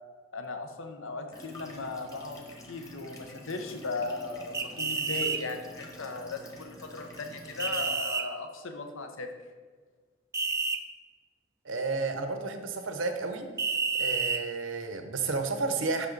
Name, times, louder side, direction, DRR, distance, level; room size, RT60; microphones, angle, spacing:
voice 1, 0.3-9.3, left 3 dB, 85° left, 6 dB, 0.8 m, -37 dB
sound 1, 1.3-7.9, left 1 dB, 15° left, 1.2 m, -48 dB
sound 2, 4.5-5.4 7.6-8.2 10.3-10.8 13.6-14.4, right 4 dB, 15° right, 0.3 m, -29 dB
voice 2, 11.6-13.5 14.0-16.1, right 3 dB, 80° right, 7 dB, 0.8 m, -31 dB
8.2 x 5.9 x 3.9 m, 1.5 s
head